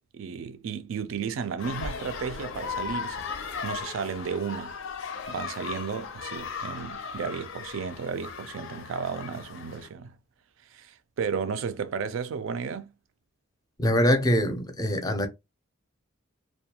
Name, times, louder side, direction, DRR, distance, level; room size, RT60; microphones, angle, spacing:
voice 1, 0.1-3.3 3.6-4.8 5.3-10.2 10.7-12.9, right 6 dB, 70° right, 0.4 m, -33 dB
sound 1, 1.6-9.9, left 5 dB, 70° left, 0.5 m, -37 dB
voice 2, 13.8-15.3, equal, 20° left, 0.5 m, -23 dB
2.3 x 2.2 x 2.8 m
head